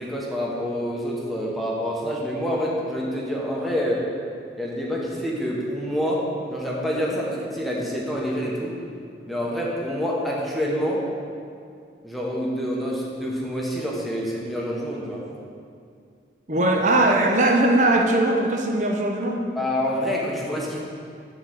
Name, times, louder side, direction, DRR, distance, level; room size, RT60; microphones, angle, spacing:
voice 1, 0.0-4.1 4.6-8.8 9.3-11.0 12.0-15.2 19.6-20.8, equal, ahead, -4 dB, 1.0 m, -27 dB
voice 2, 16.5-19.4, right 2 dB, 40° right, 1 dB, 0.7 m, -20 dB
7.7 x 3.9 x 6.2 m, 2.3 s
head